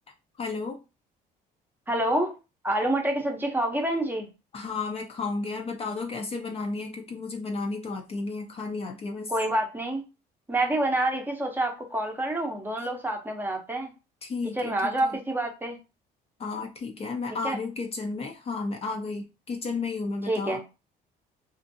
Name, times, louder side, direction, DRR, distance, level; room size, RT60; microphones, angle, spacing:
voice 1, 0.4-0.8 4.5-9.3 14.2-15.2 16.4-20.8, left 3 dB, 35° left, 3 dB, 0.5 m, -33 dB
voice 2, 1.9-2.3 2.6-4.3 9.3-10.0 10.5-13.9 14.6-15.8 17.4-17.6 20.3-20.6, right 1 dB, 10° right, 2 dB, 0.7 m, -27 dB
2.5 x 2.5 x 2.6 m, 0.28 s
cardioid pair, 110°, 17 cm